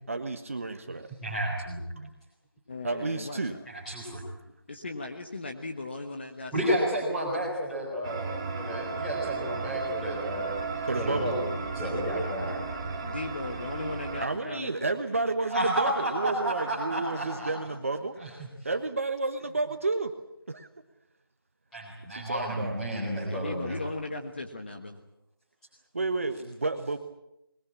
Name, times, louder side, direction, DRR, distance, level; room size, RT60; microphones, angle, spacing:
voice 1, 0.1-1.1 2.0-2.1 2.8-3.6 10.9-11.3 12.5-12.6 14.2-18.2 18.6-20.2 20.5-20.7 22.1-22.8 25.9-27.0, right 3 dB, 35° right, 7 dB, 1.3 m, -31 dB
voice 2, 1.2-1.8 3.7-4.2 6.5-10.5 11.0-11.5 11.7-12.6 15.5-17.5 18.2-18.5 21.7-23.8, equal, 5° left, -5 dB, 4.0 m, -31 dB
voice 3, 2.7-3.6 4.7-6.7 13.0-14.9 23.2-25.0, left 2 dB, 30° left, 4 dB, 1.4 m, -37 dB
sound 1, 8.0-14.2, right 4 dB, 15° right, 2.1 m, -34 dB
21.5 x 21.5 x 8.7 m, 0.85 s
figure-of-eight pair, 175°, 12 cm